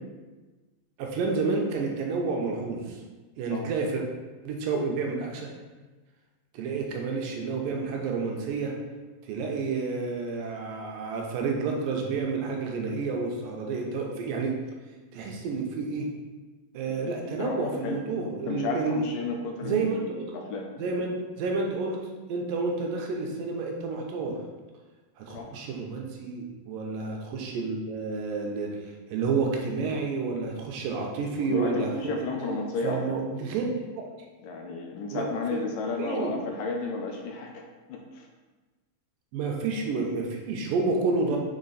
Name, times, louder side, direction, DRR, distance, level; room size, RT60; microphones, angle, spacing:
voice 1, 1.0-3.0 3.4-4.0 4.4-5.5 6.5-8.7 9.2-14.6 15.1-16.1 16.7-19.0 19.6-20.3 20.8-22.0 22.3-24.4 25.2-32.3 32.8-33.7 35.1-35.2 35.5-35.6 36.0-36.4 39.3-41.4, right 4 dB, 80° right, 0 dB, 2.3 m, -30 dB
voice 2, 16.9-18.0 18.5-20.7 25.3-25.5 31.4-33.2 34.4-38.3, left 3 dB, 80° left, 2 dB, 2.1 m, -33 dB
6.3 x 4.4 x 4.0 m, 1.3 s
omnidirectional pair, 4.2 m